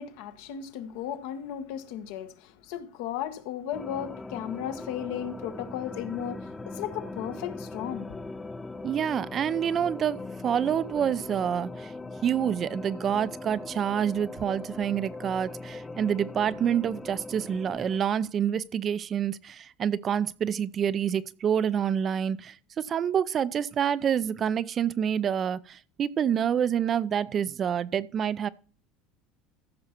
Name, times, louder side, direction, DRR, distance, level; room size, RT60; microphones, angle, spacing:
voice 1, 0.0-8.2, left 9 dB, 75° left, 1.5 m, -35 dB
sound 1, 3.7-18.0, left 2 dB, 15° left, 1.0 m, -40 dB
voice 2, 8.8-11.9 12.2-28.5, right 8 dB, 40° right, 0.6 m, -27 dB
14.5 x 5.8 x 4.5 m
supercardioid pair, 105°, 0 cm